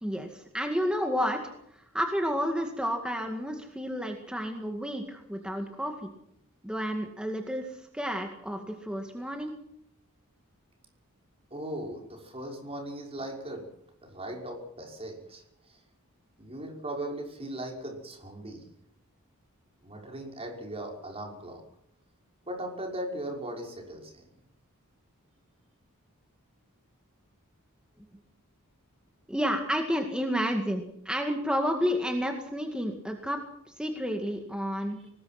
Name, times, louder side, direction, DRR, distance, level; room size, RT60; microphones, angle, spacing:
voice 1, 0.0-6.1 6.6-9.5 29.3-33.4 33.8-35.0, equal, 5° right, 3 dB, 2.1 m, -31 dB
voice 2, 11.5-13.7 14.0-15.8 16.4-18.7 19.8-21.6 22.4-24.2 35.0-35.1, right 1 dB, 25° right, 1 dB, 5.9 m, -38 dB
24.0 x 20.0 x 6.1 m, 0.75 s
head